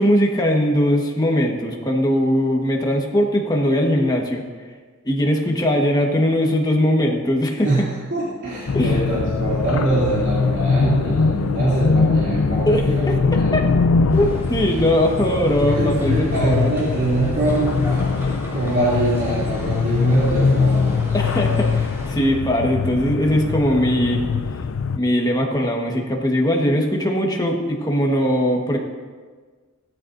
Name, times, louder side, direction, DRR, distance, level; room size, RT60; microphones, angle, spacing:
voice 1, 0.0-4.4 5.0-7.7 8.7-9.0 12.7-13.6 14.1-16.7 21.1-24.2 24.9-28.8, equal, 20° left, 1 dB, 1.4 m, -20 dB
voice 2, 7.6-13.0 13.3-13.5 15.7-18.0 18.5-21.0, right 2 dB, 55° right, -9 dB, 3.0 m, -23 dB
sound 1, 8.7-25.0, left 4 dB, 65° left, 0.5 m, -22 dB
sound 2, 14.1-22.1, equal, 15° right, 3.2 m, -35 dB
17.5 x 13.0 x 2.7 m, 1.5 s
head